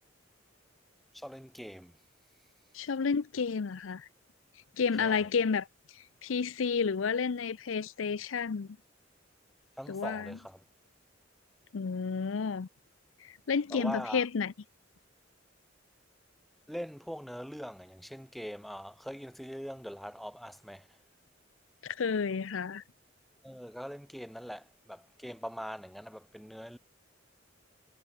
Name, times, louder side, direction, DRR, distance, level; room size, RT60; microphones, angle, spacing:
voice 1, 1.1-2.0 5.0-5.3 9.8-10.6 13.7-14.3 16.7-20.9 23.4-26.8, equal, ahead, 3.5 m, -42 dB
voice 2, 2.7-4.1 4.8-5.7 6.2-8.7 9.9-10.4 11.7-12.7 13.2-14.5 21.8-22.8, left 5 dB, 90° left, 0.5 m, -31 dB
head